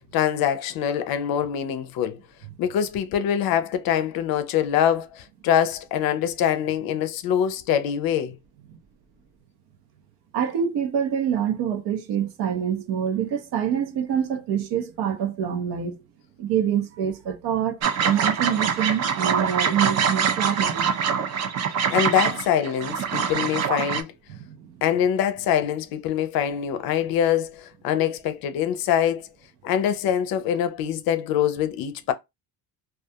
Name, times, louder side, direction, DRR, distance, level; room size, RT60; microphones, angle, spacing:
voice 1, 0.1-2.2 2.6-8.4 21.9-24.1 24.8-29.3 29.6-32.1, left 9 dB, 60° left, 0.5 m, -24 dB
voice 2, 10.3-16.0 16.4-20.9 24.3-24.6, right 8 dB, 70° right, 0.7 m, -26 dB
sound 1, 17.8-24.0, right 7 dB, 40° right, 0.4 m, -24 dB
2.3 x 2.3 x 2.7 m
cardioid pair, 140°, 40 cm